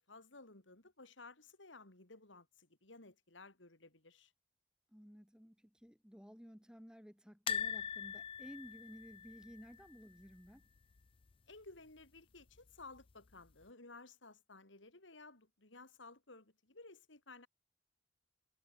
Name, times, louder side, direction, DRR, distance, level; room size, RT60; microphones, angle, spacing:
voice 1, 0.0-4.3 11.5-17.5, left 3 dB, 80° left, 3.5 m, -56 dB
voice 2, 4.9-10.6, equal, 5° right, 1.9 m, -55 dB
sound 1, 7.5-10.5 10.8-11.0 11.2-11.3 12.6-13.1 13.6-13.7, left 8 dB, 30° left, 0.4 m, -42 dB
head